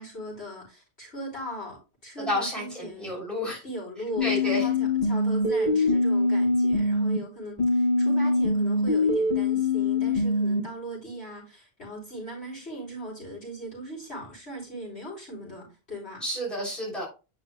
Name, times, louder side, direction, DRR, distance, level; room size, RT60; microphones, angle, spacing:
voice 1, 0.0-3.2 3.6-16.2, equal, 80° left, 3.8 m, -39 dB
voice 2, 2.2-3.6 4.2-4.7 16.2-17.1, equal, ahead, 3.1 m, -30 dB
sound 1, 4.2-7.2 7.6-10.6, left 2 dB, 40° left, 2.6 m, -23 dB
8.5 x 5.4 x 2.2 m
omnidirectional pair, 1.1 m